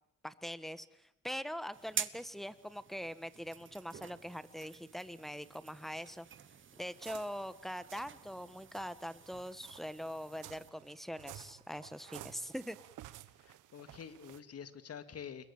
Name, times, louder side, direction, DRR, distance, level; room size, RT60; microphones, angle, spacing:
voice 1, 0.2-0.9 1.2-6.3 6.8-12.8, equal, ahead, 14 dB, 1.4 m, -42 dB
sound 1, 1.7-10.7, right 7 dB, 40° right, 1.3 m, -48 dB
sound 2, 6.3-8.2 8.7-14.4, right 14 dB, 90° right, 1.3 m, -53 dB
voice 2, 13.4-15.5, left 7 dB, 55° left, 11 dB, 2.2 m, -47 dB
29.5 x 21.5 x 7.3 m, 0.82 s
cardioid pair, 90°, 30 cm